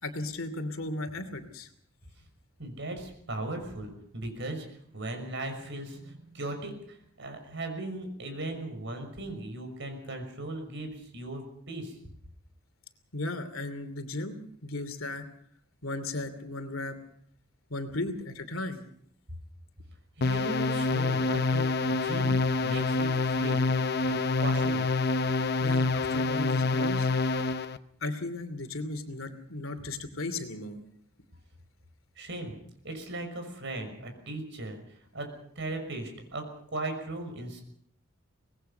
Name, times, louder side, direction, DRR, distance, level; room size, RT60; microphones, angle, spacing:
voice 1, 0.0-1.7 13.1-15.2 15.8-17.0 17.7-18.8 25.6-27.1 28.0-30.8, left 2 dB, 75° left, 9 dB, 2.8 m, -36 dB
voice 2, 2.6-12.0 20.2-22.4 22.6-23.6 24.1-24.9 32.2-32.6 32.8-37.6, right 2 dB, 60° right, 6 dB, 5.9 m, -38 dB
sound 1, 20.2-27.8, left 3 dB, 50° left, 0.9 m, -27 dB
24.0 x 20.0 x 5.7 m, 0.66 s
head